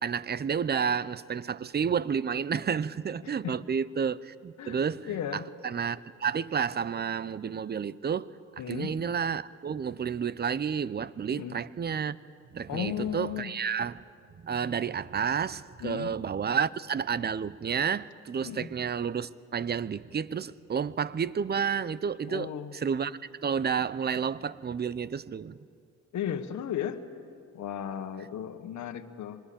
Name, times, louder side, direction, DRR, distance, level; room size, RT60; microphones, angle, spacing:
voice 1, 0.0-8.3 8.7-12.2 12.5-14.0 14.4-25.6, right 7 dB, 35° right, 18 dB, 0.7 m, -31 dB
voice 2, 5.0-5.5 8.6-8.9 11.3-11.6 12.7-13.5 15.8-16.1 18.4-18.7 22.3-22.7 26.1-27.0 27.5-29.4, left 9 dB, 70° left, 8 dB, 1.6 m, -35 dB
25.0 x 21.5 x 8.7 m, 2.3 s
cardioid pair, 90°, 30 cm